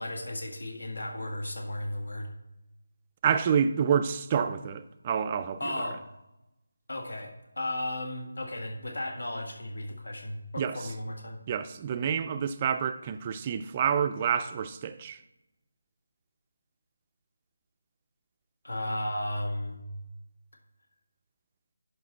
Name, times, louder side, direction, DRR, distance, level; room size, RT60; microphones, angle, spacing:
voice 1, 0.0-2.3 5.6-6.0 6.9-11.4 18.6-19.8, left 1 dB, 90° left, 1.7 m, -35 dB
voice 2, 3.2-5.7 10.6-10.9 11.5-15.2, right 7 dB, 20° right, 0.3 m, -28 dB
11.0 x 4.9 x 3.9 m
figure-of-eight pair, 175°, 0 cm